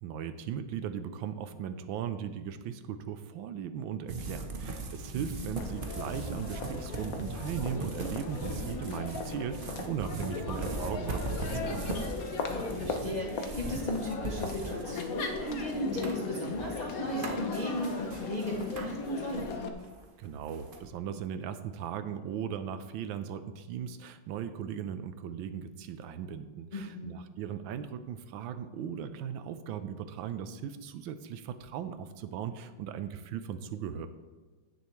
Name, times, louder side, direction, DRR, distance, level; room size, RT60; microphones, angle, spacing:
voice 1, 0.0-11.9 20.2-34.1, right 8 dB, 80° right, 11 dB, 1.3 m, -38 dB
sound 1, 4.1-19.5 19.8-20.8, right 3 dB, 45° right, 0.7 m, -39 dB
voice 2, 5.2-5.5 12.5-19.7 26.7-27.1, left 1 dB, 35° left, -1 dB, 0.7 m, -36 dB
Crowd, 5.6-19.7, left 4 dB, 55° left, 1.0 m, -37 dB
16.5 x 7.0 x 3.1 m, 1.3 s
omnidirectional pair, 2.3 m